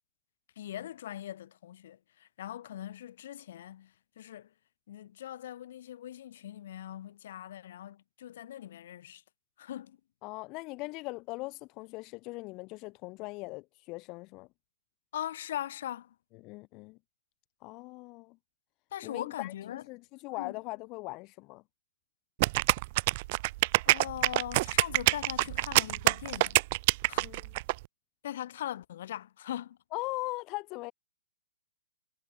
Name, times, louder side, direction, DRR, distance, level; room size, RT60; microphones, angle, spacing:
voice 1, 0.6-4.5 4.9-9.2 9.6-10.0 15.1-16.1 18.9-19.8 20.3-20.5 23.8-26.6 27.1-27.2 28.2-29.8, left 11 dB, 45° left, 4.3 m, -40 dB
voice 2, 10.2-14.5 16.4-17.0 17.6-18.4 19.0-21.6 27.2-27.5 29.9-30.9, left 24 dB, 20° left, 1.7 m, -40 dB
sound 1, 22.4-27.7, right 21 dB, 30° right, 0.4 m, -25 dB
hypercardioid pair, 175°, 0 cm